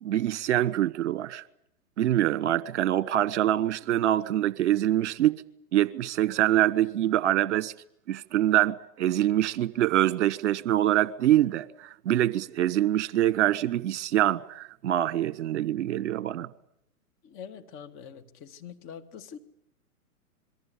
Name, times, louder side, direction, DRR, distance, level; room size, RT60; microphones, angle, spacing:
voice 1, 0.0-1.4 2.0-5.4 5.7-7.7 8.1-16.5, right 13 dB, 50° right, 1.4 m, -25 dB
voice 2, 17.2-19.4, left 7 dB, 30° left, 2.4 m, -44 dB
27.0 x 22.5 x 8.6 m
figure-of-eight pair, 115°, 44 cm